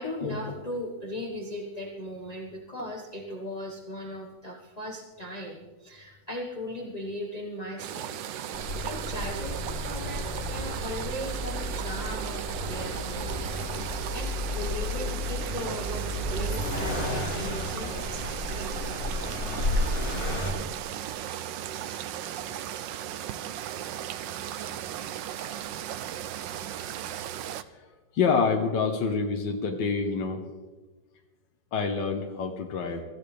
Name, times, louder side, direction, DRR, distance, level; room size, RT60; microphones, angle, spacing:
voice 1, 0.0-8.2 8.6-13.4 13.7-19.4 19.9-20.2, left 1 dB, 25° left, -1 dB, 1.4 m, -38 dB
sound 1, 7.8-27.6, right 11 dB, 85° right, 1.4 m, -36 dB
Accelerating revving vroom, 8.5-20.5, left 1 dB, 45° left, 3.4 m, -32 dB
voice 2, 28.1-30.5 31.7-33.0, left 5 dB, 80° left, 3 dB, 1.8 m, -27 dB
24.0 x 14.5 x 3.4 m, 1.2 s
omnidirectional pair, 2.0 m